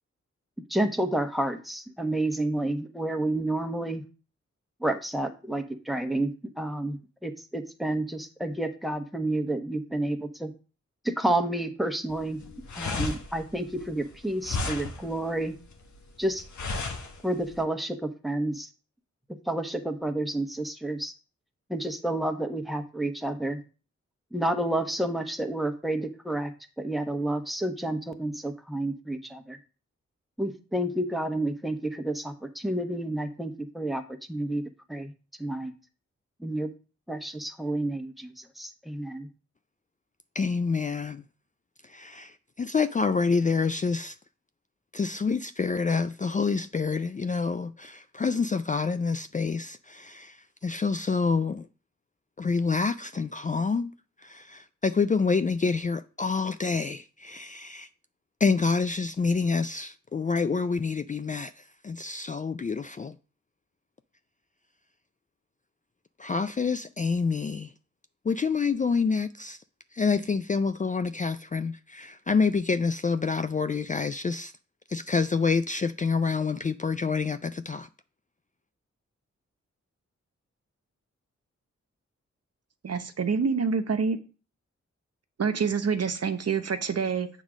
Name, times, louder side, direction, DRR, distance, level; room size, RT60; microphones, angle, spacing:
voice 1, 0.7-4.0 4.8-10.5 11.0-12.4 12.7-15.6 16.2-16.4 17.2-18.7 19.3-21.1 21.7-23.6 24.3-26.5 26.8-29.6 30.4-34.0 34.3-34.6 34.9-35.1 35.4-35.7 36.4-36.7 37.1-39.3, right 1 dB, ahead, 1.2 m, -30 dB
sound 1, 12.1-17.6, left 3 dB, 80° left, 1.2 m, -34 dB
voice 2, 40.4-41.2 41.9-44.1 44.9-50.4 50.6-51.7 52.4-53.9 54.2-57.9 58.4-61.5 61.8-63.1 66.2-67.7 68.3-69.6 69.9-74.5 74.9-77.9, left 4 dB, 25° left, 0.4 m, -27 dB
voice 3, 82.8-84.2 85.4-87.3, right 5 dB, 60° right, 0.9 m, -26 dB
7.2 x 3.8 x 6.1 m
cardioid pair, 50°, 29 cm